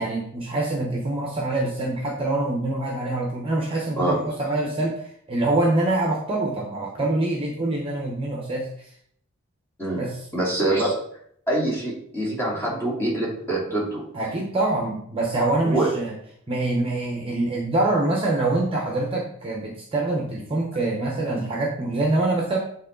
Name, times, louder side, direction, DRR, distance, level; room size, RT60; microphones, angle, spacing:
voice 1, 0.0-5.0 5.3-8.7 10.0-10.2 14.1-16.1 16.5-22.6, right 2 dB, 25° right, -1 dB, 1.0 m, -25 dB
voice 2, 10.3-10.9 11.5-14.0 15.6-15.9, right 1 dB, 10° left, -6 dB, 2.6 m, -24 dB
8.5 x 3.7 x 3.9 m, 0.65 s
head